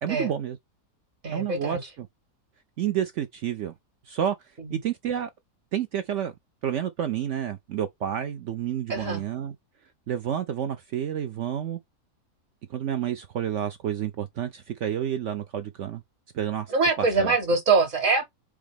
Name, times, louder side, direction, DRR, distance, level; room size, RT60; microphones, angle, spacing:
voice 1, 0.0-0.6 1.3-2.1 2.8-3.7 4.1-4.4 4.7-5.3 5.7-6.3 6.6-9.5 10.1-11.8 12.7-16.0 16.3-16.7 17.0-17.3, right 9 dB, 70° right, 0.7 m, -29 dB
voice 2, 1.2-1.8 8.9-9.2 16.7-18.2, right 4 dB, 50° right, 1.9 m, -23 dB
4.9 x 3.0 x 3.5 m
omnidirectional pair, 1.7 m